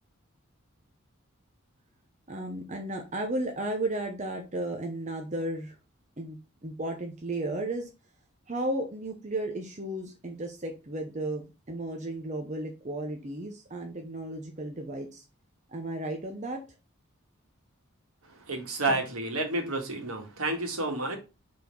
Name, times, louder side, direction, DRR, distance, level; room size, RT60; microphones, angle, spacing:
voice 1, 2.3-5.7 6.2-7.9 8.5-15.2 15.7-16.6 18.9-19.0, right 1 dB, 35° right, 3 dB, 0.8 m, -34 dB
voice 2, 18.5-21.2, right 2 dB, 85° right, 3 dB, 1.8 m, -30 dB
4.8 x 4.2 x 5.3 m, 0.29 s
head